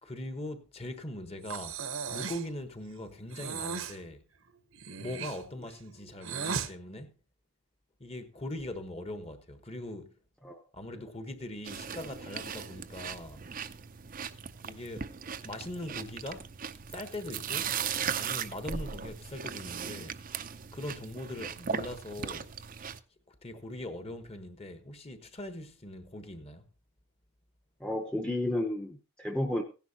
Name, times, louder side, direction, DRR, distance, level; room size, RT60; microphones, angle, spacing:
voice 1, 0.0-1.8 2.1-4.2 5.0-7.1 8.0-10.2 10.7-13.4 14.6-15.1 15.4-16.5 16.9-17.8 18.1-20.2 20.7-22.5 23.3-26.6, left 1 dB, 25° left, 1.2 m, -41 dB
Breathing, 1.4-2.5 3.3-4.0 4.7-6.7, right 6 dB, 65° right, 1.0 m, -36 dB
sound 1, 11.6-23.0, right 7 dB, 40° right, 0.6 m, -38 dB
voice 2, 27.8-29.6, left 1 dB, 5° left, 0.8 m, -32 dB
16.5 x 10.5 x 2.9 m
head